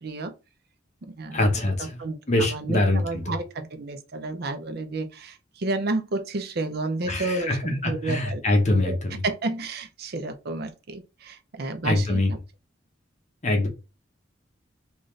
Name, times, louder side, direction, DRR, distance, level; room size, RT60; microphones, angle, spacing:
voice 1, 0.0-0.3 1.0-1.4 1.8-8.4 8.8-9.0 9.2-12.4, right 2 dB, 55° right, 0.5 m, -31 dB
voice 2, 1.3-2.0 2.3-3.3 7.1-9.2 11.8-12.3 13.4-13.7, left 1 dB, 35° left, 0.9 m, -24 dB
3.9 x 2.5 x 3.2 m
head